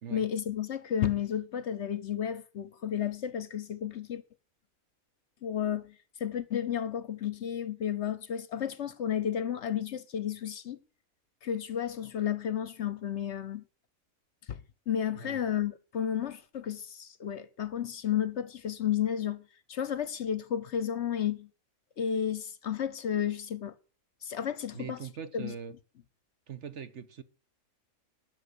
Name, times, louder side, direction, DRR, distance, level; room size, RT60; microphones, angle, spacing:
voice 1, 0.1-4.2 5.4-5.9 6.2-10.8 11.4-13.6 14.5-14.6 14.9-19.4 19.7-21.5 22.0-23.7 24.2-25.0 25.3-25.5, left 9 dB, 60° left, 0.9 m, -32 dB
voice 2, 24.7-25.7 26.5-27.2, right 7 dB, 55° right, 1.2 m, -42 dB
12.0 x 6.5 x 8.5 m
omnidirectional pair, 1.5 m